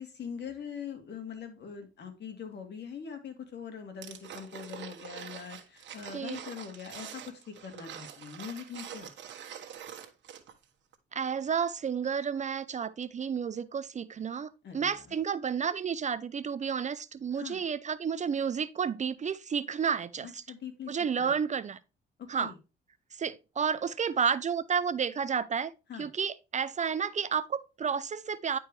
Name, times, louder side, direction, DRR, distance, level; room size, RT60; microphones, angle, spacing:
voice 1, 0.0-9.1 14.6-15.2 17.4-17.6 20.2-21.3 22.2-22.6 25.9-26.1, left 7 dB, 60° left, 2.3 m, -42 dB
sound 1, 4.0-10.6 10.9-11.0, right 9 dB, 65° right, 1.4 m, -45 dB
voice 2, 6.1-6.4 11.1-20.4 20.9-21.8 22.3-22.5 23.1-25.7 26.0-28.6, right 7 dB, 35° right, 0.5 m, -31 dB
10.0 x 4.6 x 3.1 m
cardioid pair, 90°, 20 cm